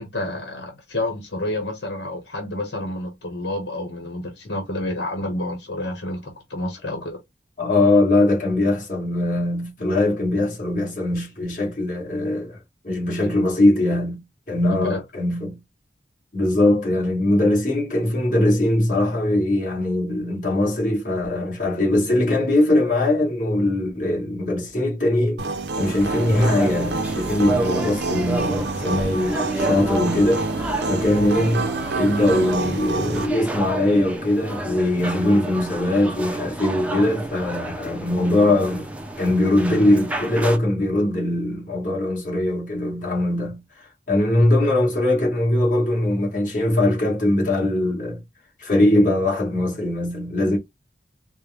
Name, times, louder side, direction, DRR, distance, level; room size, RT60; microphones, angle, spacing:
voice 1, 0.0-7.2 14.8-15.0, left 1 dB, 80° left, 1.3 m, -29 dB
voice 2, 7.6-12.6 12.8-14.2 14.5-15.6 16.3-25.4 25.8-30.5 30.9-31.7 31.9-38.9 39.2-43.6 44.1-48.2 48.6-50.6, left 1 dB, 45° left, 1.9 m, -21 dB
sound 1, 25.4-33.3, right 3 dB, 75° right, 0.7 m, -27 dB
sound 2, 25.8-40.6, right 2 dB, 10° right, 0.6 m, -31 dB
4.5 x 2.2 x 3.5 m
head